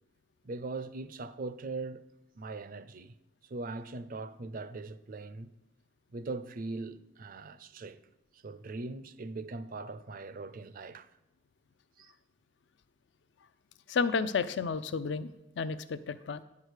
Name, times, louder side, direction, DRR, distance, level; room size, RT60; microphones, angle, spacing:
voice 1, 0.4-2.0 2.4-3.1 3.4-5.5 6.1-8.0 8.3-11.1 12.0-12.1, right 3 dB, 50° right, 0.5 m, -40 dB
voice 2, 13.9-15.3 15.6-16.4, left 5 dB, 70° left, 0.4 m, -31 dB
10.0 x 4.8 x 6.4 m
head